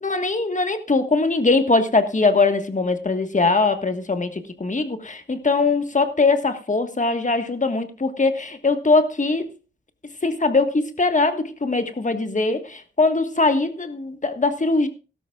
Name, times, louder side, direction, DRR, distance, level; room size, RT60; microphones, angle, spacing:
voice 1, 0.0-9.5 10.2-14.9, left 3 dB, 40° left, 8 dB, 1.5 m, -21 dB
16.5 x 13.0 x 2.4 m, 0.32 s
wide cardioid pair, 70°, 19 cm